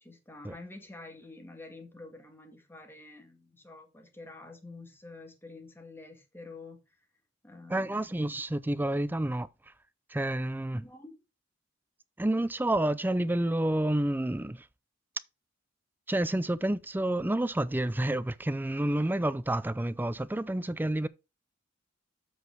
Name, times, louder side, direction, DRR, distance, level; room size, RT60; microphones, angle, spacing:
voice 1, 0.0-6.8 7.4-8.0 10.7-11.2, left 2 dB, 10° left, 1.8 m, -48 dB
voice 2, 7.7-9.5 10.1-10.8 12.2-14.7 16.1-21.1, right 1 dB, 10° right, 0.4 m, -29 dB
8.0 x 5.0 x 4.5 m
head